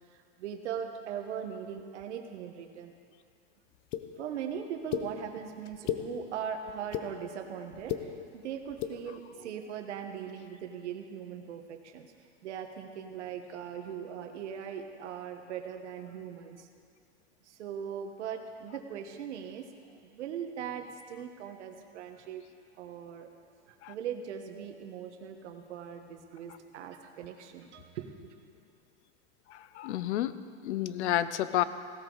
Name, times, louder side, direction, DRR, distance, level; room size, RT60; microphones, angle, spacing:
voice 1, 0.1-2.9 4.2-12.1 12.4-16.7 17.4-22.4 22.8-23.3 23.7-28.4, right 8 dB, 80° right, 5 dB, 1.5 m, -40 dB
sound 1, 3.9-4.0 4.9-5.0 5.7-6.0 6.7-7.1 7.7-8.0 8.7-8.9, left 12 dB, 40° left, 0.8 m, -32 dB
voice 2, 29.5-31.6, left 12 dB, 75° left, 14 dB, 0.7 m, -31 dB
16.5 x 13.5 x 4.0 m, 2.3 s
supercardioid pair, 150°, 34 cm